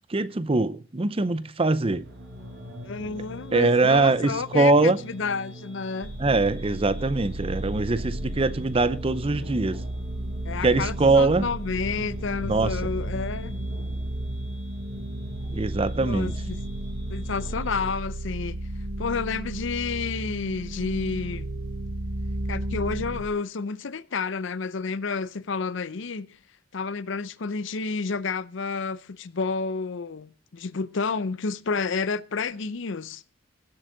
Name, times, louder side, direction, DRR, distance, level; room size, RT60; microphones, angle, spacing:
voice 1, 0.1-2.0 3.5-5.0 6.2-9.8 10.6-11.5 12.5-12.7 15.5-16.3, right 3 dB, 25° right, 0.5 m, -22 dB
sound 1, 1.6-17.9, equal, 55° right, 7.0 m, -42 dB
voice 2, 2.8-6.1 10.4-13.5 16.0-16.6 17.1-18.6 19.0-21.5 22.5-26.3 26.7-33.2, left 4 dB, 60° left, 0.6 m, -30 dB
sound 2, 6.0-23.3, right 1 dB, 70° right, 1.1 m, -33 dB
17.0 x 7.9 x 3.9 m
head